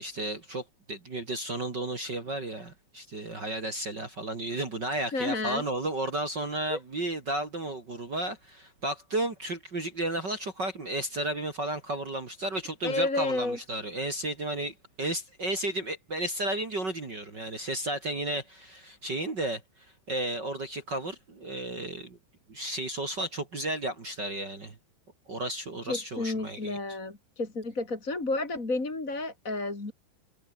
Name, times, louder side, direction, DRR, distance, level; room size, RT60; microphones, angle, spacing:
voice 1, 0.0-22.2 22.5-24.8 25.3-26.8, right 1 dB, 35° right, 2.0 m, -33 dB
voice 2, 5.1-5.6 6.7-6.8 12.8-13.6 25.9-29.9, left 2 dB, 20° left, 3.2 m, -31 dB
omnidirectional pair, 5.6 m